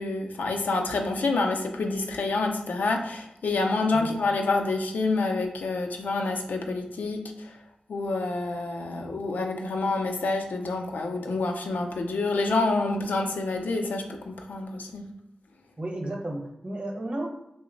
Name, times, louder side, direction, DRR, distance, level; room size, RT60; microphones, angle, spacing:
voice 1, 0.0-7.5 7.9-15.1, left 3 dB, 80° left, 3 dB, 0.4 m, -28 dB
voice 2, 15.8-17.3, right 1 dB, 40° right, 0 dB, 0.9 m, -33 dB
2.9 x 2.0 x 3.7 m, 0.84 s
cardioid pair, 45°, 3 cm